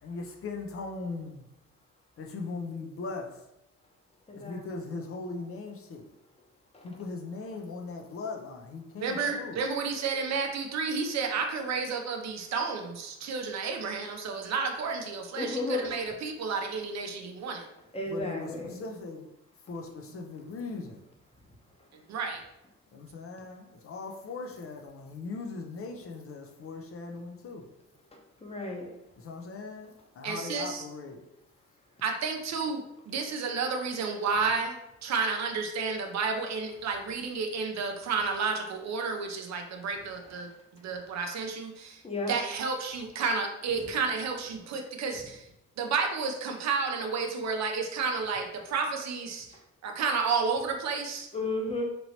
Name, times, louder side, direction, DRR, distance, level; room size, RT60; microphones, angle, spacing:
voice 1, 0.0-1.4 2.2-3.5 4.3-6.0 6.8-9.6 18.1-19.3 19.6-21.0 22.9-27.6 29.2-31.2, left 3 dB, 50° left, 3 dB, 0.5 m, -39 dB
voice 2, 4.3-4.6 6.7-6.8 15.4-15.9 17.9-18.8 28.4-28.9 42.0-42.3 51.3-51.8, left 2 dB, 20° left, 0 dB, 0.8 m, -33 dB
voice 3, 9.0-17.6 21.9-22.4 30.2-30.8 32.0-34.8 35.0-40.5 40.8-42.0 42.3-45.5 45.8-49.5 49.8-51.3, right 5 dB, 60° right, 3 dB, 0.6 m, -31 dB
3.0 x 2.8 x 2.8 m, 0.85 s
cardioid pair, 90°, 30 cm